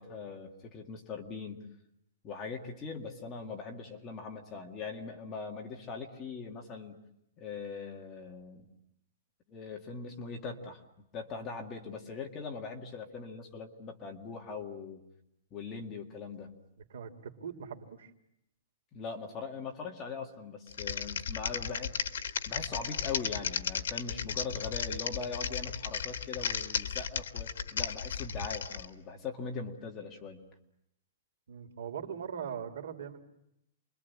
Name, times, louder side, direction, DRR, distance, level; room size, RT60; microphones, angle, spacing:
voice 1, 0.0-1.6 2.2-7.0 7.4-8.7 9.5-15.0 15.5-16.6 18.9-22.0 22.5-30.5, left 4 dB, 15° left, 2 dB, 2.0 m, -41 dB
voice 2, 16.9-18.1 31.5-33.2, right 7 dB, 70° right, 6 dB, 3.2 m, -40 dB
Typing, 20.7-28.8, left 7 dB, 80° left, 1.6 m, -35 dB
29.0 x 23.5 x 8.6 m, 0.80 s
hypercardioid pair, 180°, 0 cm